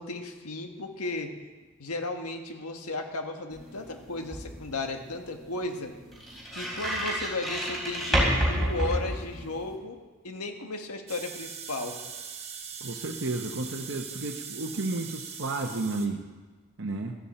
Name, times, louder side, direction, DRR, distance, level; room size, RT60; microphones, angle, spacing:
voice 1, 0.0-1.3 1.8-5.9 6.5-10.0 10.2-12.0, left 2 dB, 90° left, 4 dB, 1.5 m, -35 dB
sound 1, 3.5-9.8, equal, ahead, 3.4 m, -30 dB
sound 2, 11.1-16.1, right 6 dB, 30° right, 1.1 m, -41 dB
voice 2, 12.8-16.2 16.8-17.2, right 2 dB, 55° right, 1 dB, 0.9 m, -32 dB
15.5 x 13.0 x 4.3 m, 1.3 s
head